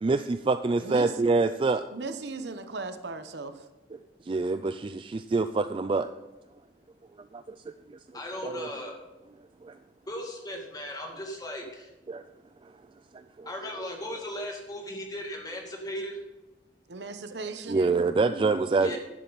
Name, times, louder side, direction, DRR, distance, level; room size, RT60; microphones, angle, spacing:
voice 1, 0.0-1.9 3.9-6.1 7.3-7.6 7.9-8.0 8.4-8.7 9.6-9.8 12.1-12.2 12.6-12.7 13.1-13.5 17.7-18.9, right 3 dB, 30° right, 11 dB, 0.3 m, -26 dB
voice 2, 1.9-3.5 16.9-18.0 18.3-18.6 18.9-19.0, right 3 dB, 75° right, 9 dB, 0.9 m, -37 dB
voice 3, 8.1-8.9 10.1-11.9 13.5-16.2 18.8-19.0, left 1 dB, 20° left, 1 dB, 2.2 m, -37 dB
11.5 x 10.5 x 4.0 m, 1.1 s
head